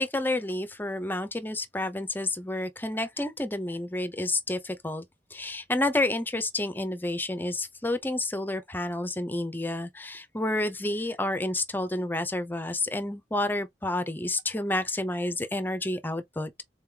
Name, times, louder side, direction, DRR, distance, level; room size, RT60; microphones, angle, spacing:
voice 1, 0.0-5.1 5.3-16.5, left 2 dB, 10° left, 0.6 m, -30 dB
3.9 x 3.5 x 3.2 m
head